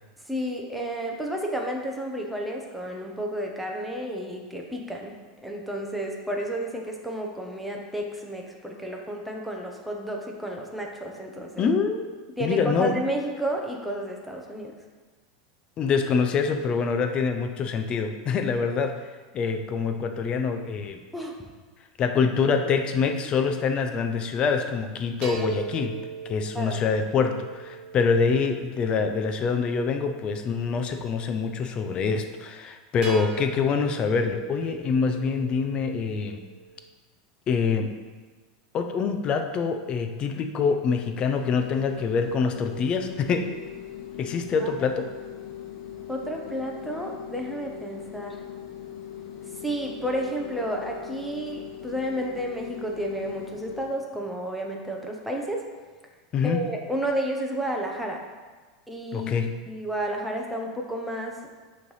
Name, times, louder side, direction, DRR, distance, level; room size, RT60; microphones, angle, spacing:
voice 1, 0.3-5.1 5.4-11.7 12.4-14.7 21.1-21.3 26.5-26.8 44.6-44.7 46.1-48.4 49.6-55.6 56.4-58.2 58.9-61.4, right 1 dB, ahead, 0 dB, 0.8 m, -31 dB
voice 2, 11.6-12.0 12.4-12.9 15.8-21.0 22.0-25.9 26.3-36.4 37.5-37.9 38.7-43.5 44.2-45.1 56.3-56.6 59.1-59.5, left 5 dB, 30° left, 7 dB, 0.5 m, -25 dB
sound 1, 25.2-29.5 33.0-36.9, right 5 dB, 30° right, 1.0 m, -39 dB
sound 2, 41.3-53.9, left 10 dB, 55° left, 0.9 m, -40 dB
6.8 x 3.2 x 5.5 m, 1.4 s
supercardioid pair, 145°, 3 cm